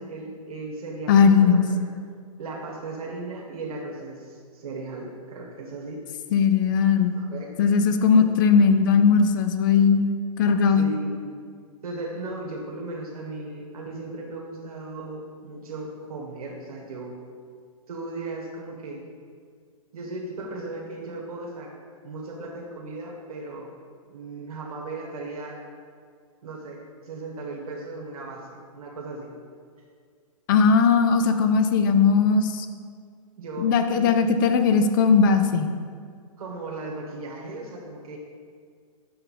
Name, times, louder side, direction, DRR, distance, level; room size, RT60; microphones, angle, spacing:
voice 1, 0.0-1.9 2.4-6.0 7.1-7.7 8.1-8.2 10.8-11.4 11.8-17.2 17.9-19.0 19.9-21.7 22.0-23.7 24.1-25.6 26.4-29.3 33.4-34.2 36.4-38.2, right 2 dB, 75° right, -2 dB, 1.3 m, -36 dB
voice 2, 1.1-1.6 6.3-7.2 7.6-10.1 10.4-10.8 30.5-32.7 33.6-35.7, left 5 dB, 35° left, 8 dB, 0.4 m, -18 dB
6.5 x 4.4 x 4.1 m, 2.1 s
hypercardioid pair, 145°, 19 cm